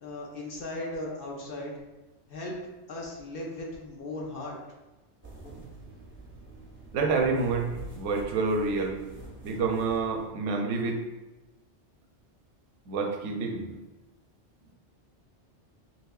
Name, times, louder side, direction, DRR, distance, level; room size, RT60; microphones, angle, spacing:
voice 1, 0.0-1.7 2.3-2.6 2.9-4.6, left 2 dB, 60° left, -2 dB, 0.7 m, -37 dB
sound 1, 5.2-10.3, right 2 dB, 15° right, 0.4 m, -46 dB
voice 2, 6.9-9.0 9.4-11.0 12.9-13.8, right 4 dB, 85° right, 3 dB, 0.9 m, -28 dB
3.6 x 3.1 x 2.3 m, 1.1 s
omnidirectional pair, 1.2 m